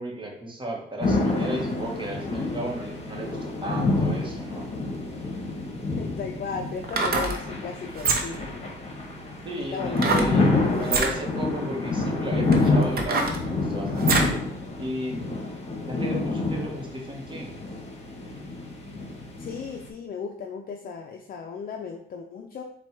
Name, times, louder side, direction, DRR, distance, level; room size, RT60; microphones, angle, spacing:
voice 1, 0.0-4.7 9.4-14.3 14.8-15.2 15.9-17.6, right 1 dB, 25° right, 0 dB, 1.2 m, -34 dB
sound 1, 1.0-19.9, left 3 dB, 35° left, 1.2 m, -28 dB
sound 2, 5.6-5.7 6.8-7.4 7.9-8.5 10.0-10.3 10.8-11.1 11.9-12.0 12.5-14.4 14.8-14.9, right 3 dB, 50° right, 0.7 m, -25 dB
voice 2, 5.9-8.7 9.5-10.5 19.3-22.6, left 5 dB, 50° left, 3 dB, 0.4 m, -36 dB
4.2 x 2.3 x 4.4 m, 0.67 s
cardioid pair, 90°, 20 cm